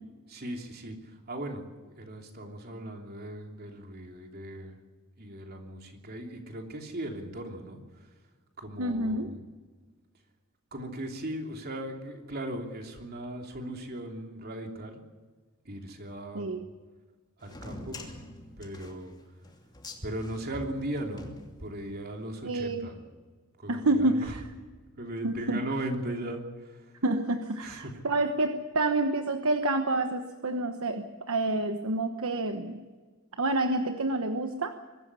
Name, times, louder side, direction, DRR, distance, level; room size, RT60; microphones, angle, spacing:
voice 1, 0.3-1.0 1.3-1.6 2.0-4.8 5.2-7.8 8.6-9.4 10.7-15.0 15.6-16.5 17.4-18.2 18.6-19.1 20.0-21.3 21.6-22.9 23.6-24.3 25.0-26.9 27.6-27.9, right 1 dB, 45° right, 3 dB, 3.1 m, -38 dB
voice 2, 8.8-9.3 16.3-16.6 22.4-22.9 23.7-24.4 25.2-25.6 27.0-32.8 33.4-34.7, right 2 dB, 70° right, 7 dB, 1.2 m, -28 dB
sound 1, 17.4-22.0, left 2 dB, 20° left, 2.7 m, -46 dB
23.0 x 13.0 x 9.8 m, 1.4 s
head